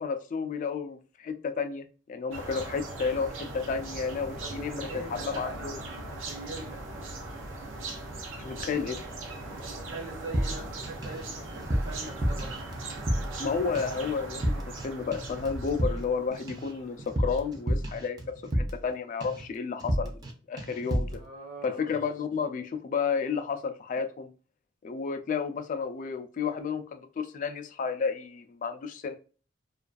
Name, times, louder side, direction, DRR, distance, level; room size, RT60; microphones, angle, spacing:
voice 1, 0.0-5.7 8.4-9.0 13.4-18.2 18.5-20.2 20.5-21.2 21.6-24.3 24.8-29.2, left 5 dB, 40° left, 7 dB, 0.3 m, -32 dB
sound 1, 2.3-17.4, right 2 dB, 90° right, 0.6 m, -40 dB
voice 2, 4.4-7.0 9.5-12.6 21.1-22.0, right 2 dB, 65° right, 0 dB, 1.0 m, -43 dB
sound 2, 10.3-11.2 11.5-13.5 13.7-14.0 14.3-14.9 15.1-18.9 19.2-19.5 19.8-20.3 20.6-21.2, equal, 20° right, 0.4 m, -31 dB
2.4 x 2.2 x 2.3 m, 0.37 s
head